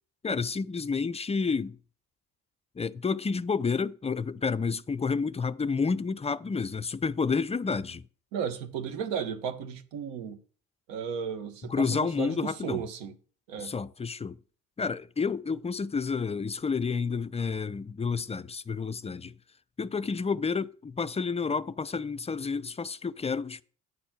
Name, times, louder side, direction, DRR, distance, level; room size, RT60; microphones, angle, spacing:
voice 1, 0.2-1.8 2.8-8.0 11.7-12.8 13.6-14.4 14.8-19.3 19.8-23.6, left 5 dB, 15° left, 0.4 m, -30 dB
voice 2, 8.3-10.4 10.9-13.1 13.5-13.7, right 7 dB, 70° right, 1.4 m, -34 dB
9.0 x 4.3 x 7.3 m
hypercardioid pair, 50°, 46 cm